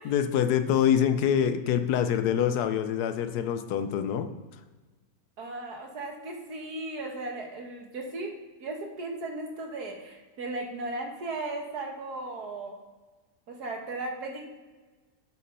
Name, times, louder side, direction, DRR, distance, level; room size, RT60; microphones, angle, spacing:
voice 1, 0.0-4.3, left 9 dB, 85° left, 9 dB, 1.2 m, -25 dB
voice 2, 5.4-8.3 8.6-12.7 13.5-14.5, right 2 dB, 85° right, 2 dB, 2.0 m, -36 dB
8.3 x 6.3 x 5.4 m, 1.3 s
omnidirectional pair, 1.6 m